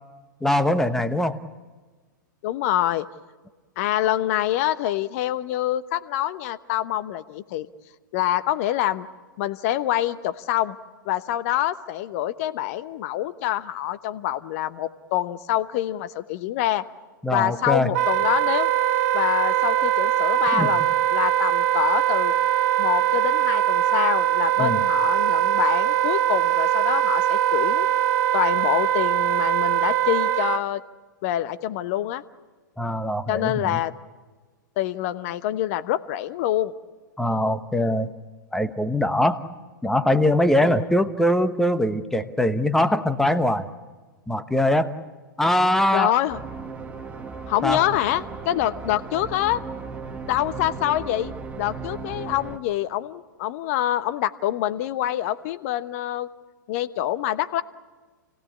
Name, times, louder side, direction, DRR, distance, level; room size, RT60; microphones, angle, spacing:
voice 1, 0.4-1.4 17.2-17.9 20.5-20.7 24.6-24.8 32.8-33.8 37.2-38.1 38.5-39.4 39.8-43.7 44.3-44.9 45.4-46.1 47.6-47.8, left 1 dB, 5° left, 9 dB, 1.1 m, -22 dB
voice 2, 2.4-3.1 3.8-7.7 8.1-9.1 9.4-10.8 11.0-16.8 17.3-18.7 19.1-22.3 22.8-27.9 28.3-30.8 31.2-32.2 33.3-33.9 34.8-36.7 40.6-40.9 45.9-46.4 47.5-49.6 50.3-56.3 56.7-57.6, left 13 dB, 45° left, 13 dB, 1.0 m, -26 dB
Wind instrument woodwind instrument, 17.9-30.6, right 12 dB, 45° right, 1.0 m, -21 dB
sound 1, 46.3-52.6, right 4 dB, 10° right, 1.4 m, -36 dB
29.5 x 17.0 x 8.5 m, 1.4 s
figure-of-eight pair, 105°, 11 cm